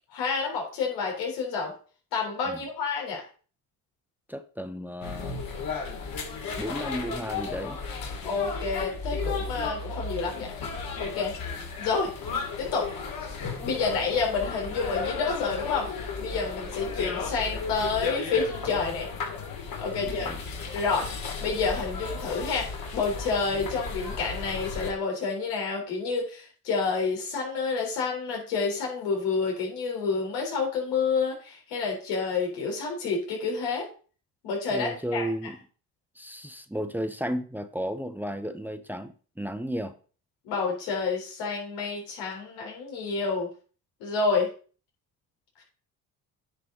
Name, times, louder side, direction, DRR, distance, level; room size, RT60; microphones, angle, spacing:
voice 1, 0.1-1.7 2.1-3.3 8.2-10.5 11.0-11.4 11.8-12.1 12.6-12.9 13.6-15.9 16.2-19.1 19.8-20.3 20.7-21.1 21.4-33.9 34.4-35.3 40.4-43.5 44.0-44.5 45.6-45.7, left 4 dB, 85° left, 0 dB, 3.8 m, -29 dB
voice 2, 4.3-5.4 6.6-7.8 20.0-20.4 34.7-35.6 36.2-39.9, equal, 5° right, 9 dB, 0.9 m, -33 dB
sound 1, 5.0-24.9, left 4 dB, 60° left, 3.1 m, -34 dB
9.8 x 5.6 x 3.9 m, 0.39 s
supercardioid pair, 75°, 39 cm